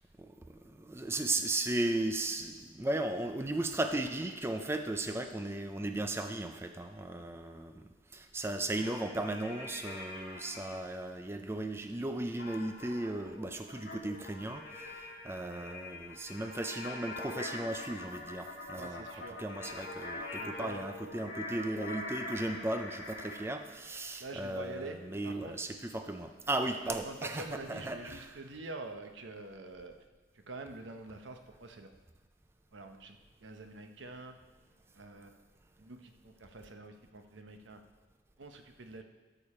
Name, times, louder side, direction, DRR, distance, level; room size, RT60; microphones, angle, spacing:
voice 1, 0.2-7.8 8.1-19.0 19.4-28.3, right 2 dB, 15° right, 6 dB, 0.4 m, -36 dB
sound 1, 8.7-10.8 12.4-23.5, left 2 dB, 65° left, 3.0 m, -44 dB
voice 2, 18.8-19.4 20.4-20.9 24.2-25.0 25.2-25.7 26.7-30.0 30.3-31.9 32.7-34.4 34.9-35.4 35.8-37.8 38.4-39.0, right 2 dB, 80° right, 6 dB, 0.9 m, -46 dB
13.5 x 6.9 x 4.3 m, 1.3 s
head